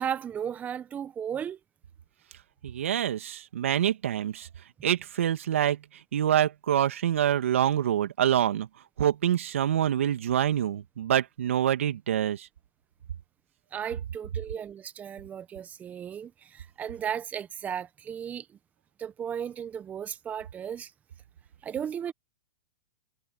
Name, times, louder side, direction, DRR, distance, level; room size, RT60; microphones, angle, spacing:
voice 1, 0.0-1.6 13.7-18.5 19.0-20.9 21.6-22.1, right 8 dB, 20° right, 1.3 m, -35 dB
voice 2, 2.6-4.5 4.8-5.8 6.1-8.7 9.0-12.5, right 10 dB, 75° right, 2.6 m, -26 dB
hypercardioid pair, 115°, 7 cm